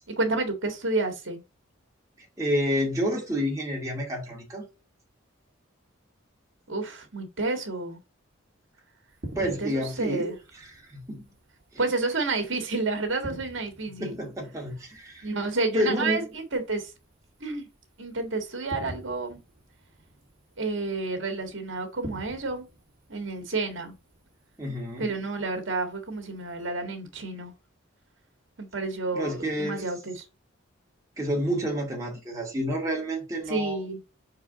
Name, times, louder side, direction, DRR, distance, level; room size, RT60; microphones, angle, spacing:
voice 1, 0.1-1.4 6.7-8.0 9.4-10.3 11.8-14.2 15.2-16.9 17.4-17.7 18.0-19.4 20.6-22.6 23.1-23.9 25.0-27.5 28.6-30.3 33.5-34.0, right 3 dB, 65° right, 1.7 m, -30 dB
voice 2, 2.4-4.6 9.4-10.3 10.6-11.2 14.0-15.3 15.7-16.3 24.6-25.2 29.1-29.8 31.2-33.8, equal, 15° right, 2.1 m, -29 dB
sound 1, 9.1-26.7, right 1 dB, 45° right, 1.9 m, -48 dB
4.7 x 4.7 x 5.0 m
head